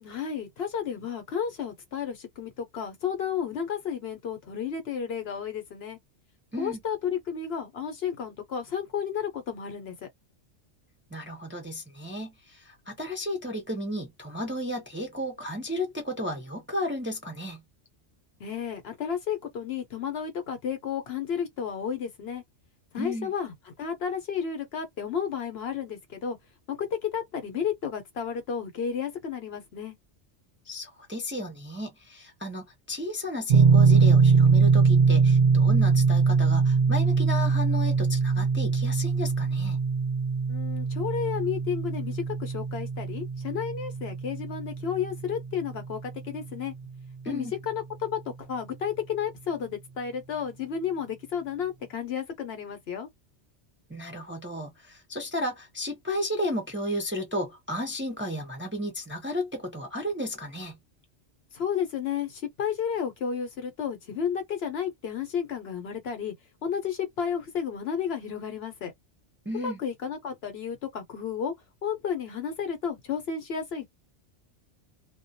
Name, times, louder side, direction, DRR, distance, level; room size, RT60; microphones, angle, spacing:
voice 1, 0.0-6.0 6.6-10.1 18.4-22.4 22.9-26.4 26.7-29.9 40.5-46.7 47.3-53.1 61.5-66.3 66.6-68.9 69.5-71.5 71.8-73.9, left 7 dB, 65° left, 0.9 m, -32 dB
voice 2, 11.1-17.6 23.0-23.3 30.7-39.8 47.2-47.5 53.9-60.7 69.5-69.8, left 1 dB, 15° right, 0.5 m, -33 dB
sound 1, 33.5-46.4, right 5 dB, 50° right, 0.7 m, -22 dB
2.2 x 2.2 x 2.6 m
omnidirectional pair, 1.2 m